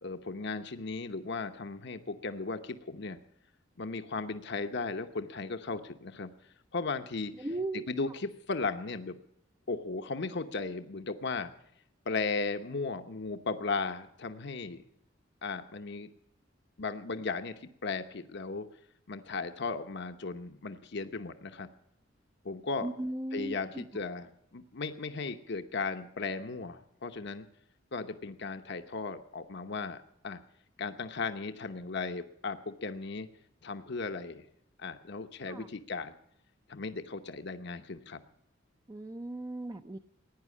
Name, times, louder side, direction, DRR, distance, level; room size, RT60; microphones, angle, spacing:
voice 1, 0.0-3.2 3.8-6.3 6.7-7.5 7.7-9.2 9.7-11.5 12.1-14.8 15.4-16.1 16.8-18.7 19.1-21.7 22.4-22.9 23.3-27.4 27.9-30.0 30.2-30.4 30.8-33.3 33.6-34.5 34.8-36.1 36.7-38.2, left 4 dB, 60° left, 8 dB, 1.0 m, -36 dB
voice 2, 7.4-7.9 22.8-23.6 35.5-35.7 38.9-40.0, right 2 dB, 20° right, 7 dB, 0.6 m, -36 dB
16.5 x 10.0 x 8.4 m, 0.73 s
head